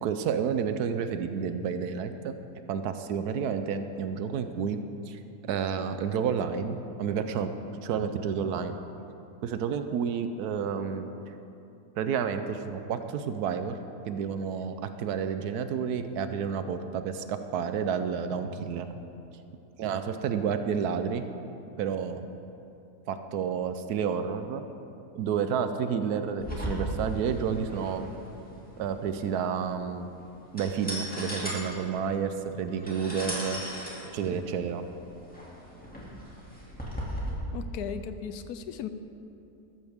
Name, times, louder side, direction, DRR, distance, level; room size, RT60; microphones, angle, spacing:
voice 1, 0.0-2.3 2.7-4.8 5.1-5.2 5.5-7.5 7.8-8.7 9.4-11.1 12.0-13.8 14.1-18.9 19.8-21.3 21.8-22.3 23.1-24.6 25.2-28.1 28.8-30.1 30.5-33.6 34.1-34.8, right 7 dB, 80° right, 9 dB, 1.2 m, -30 dB
sound 1, 26.4-37.3, equal, 5° left, 2.2 m, -38 dB
voice 2, 37.5-38.9, left 8 dB, 80° left, 10 dB, 1.1 m, -36 dB
14.0 x 13.0 x 3.6 m, 2.8 s
omnidirectional pair, 1.6 m